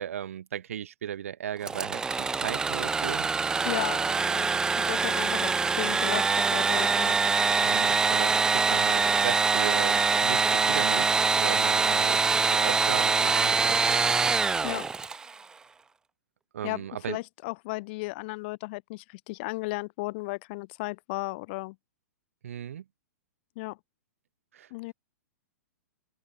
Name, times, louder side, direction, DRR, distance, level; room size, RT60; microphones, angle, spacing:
voice 1, 0.0-3.3 7.6-14.4 16.5-17.2 22.4-22.8 24.5-24.7, right 9 dB, 55° right, 7.1 m, -37 dB
Engine / Sawing, 1.6-15.3, right 4 dB, 10° right, 0.4 m, -24 dB
voice 2, 3.7-7.2 14.6-14.9 16.6-21.8 23.6-23.8 24.7-24.9, left 24 dB, 40° left, 3.5 m, -35 dB
open air
figure-of-eight pair, 105°, 9 cm